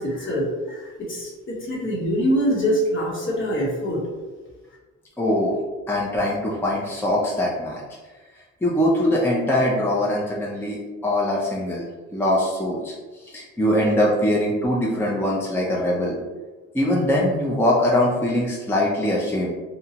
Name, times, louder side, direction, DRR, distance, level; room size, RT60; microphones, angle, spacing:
voice 1, 0.0-4.1, equal, 40° left, -3 dB, 1.0 m, -24 dB
voice 2, 5.2-5.6 5.9-7.8 8.6-11.9 12.1-16.2 16.7-19.5, left 1 dB, 5° left, -5 dB, 0.5 m, -22 dB
2.9 x 2.2 x 2.8 m, 1.3 s
cardioid pair, 90°, 30 cm